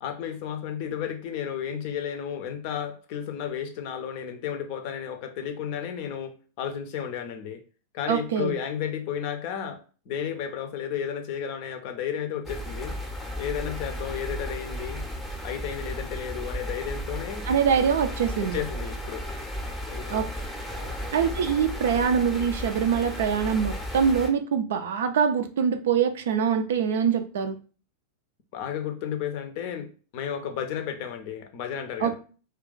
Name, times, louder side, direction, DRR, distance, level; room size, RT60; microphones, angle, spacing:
voice 1, 0.0-7.6 7.9-13.0 13.4-15.0 15.4-17.5 18.4-19.3 19.9-20.2 20.7-21.1 28.5-29.9 30.1-32.1, left 8 dB, 45° left, 0.5 m, -33 dB
voice 2, 8.1-8.6 17.5-18.6 20.1-20.3 21.1-27.6 32.0-32.1, right 7 dB, 60° right, 0.4 m, -24 dB
sound 1, 12.5-24.3, equal, ahead, 0.7 m, -34 dB
2.4 x 2.3 x 3.8 m
figure-of-eight pair, 90°, 0 cm